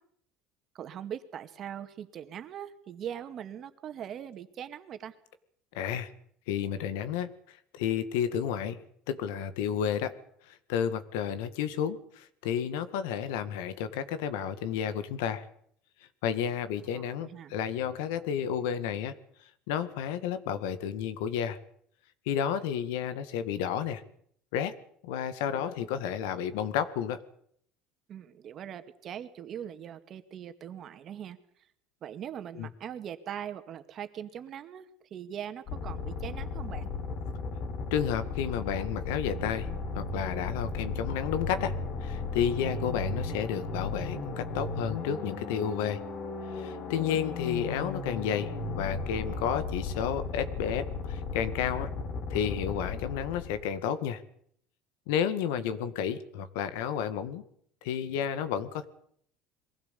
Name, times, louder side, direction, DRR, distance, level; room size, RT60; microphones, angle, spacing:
voice 1, 0.7-5.1 16.9-17.5 28.1-31.4 32.0-36.9 46.9-47.2, right 9 dB, 45° right, 9 dB, 2.2 m, -41 dB
voice 2, 5.7-6.1 6.5-8.8 9.1-10.2 10.5-15.5 16.2-19.1 19.7-21.6 22.3-24.0 24.5-24.7 25.0-27.2 32.6-32.7 37.9-39.7 39.9-41.7 42.0-46.0 46.5-51.9 52.3-54.2 55.1-57.4 57.8-58.9, left 8 dB, 85° left, 12 dB, 1.9 m, -31 dB
sound 1, 35.7-53.7, left 3 dB, 50° left, 4.0 m, -35 dB
22.5 x 16.0 x 8.4 m, 0.66 s
cardioid pair, 125°, 0 cm